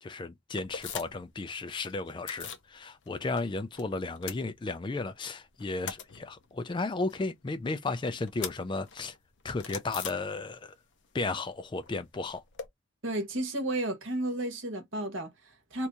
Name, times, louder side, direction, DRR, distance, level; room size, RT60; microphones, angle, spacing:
voice 1, 0.0-9.2 9.4-10.8 11.1-12.4, left 3 dB, 25° left, 0.3 m, -34 dB
sound 1, 0.6-1.3 1.6-2.7 3.0-5.1 5.4-10.8 11.0-12.7, left 7 dB, 60° left, 0.6 m, -43 dB
voice 2, 13.0-15.9, right 1 dB, 70° right, 1.2 m, -33 dB
2.9 x 2.6 x 3.5 m
head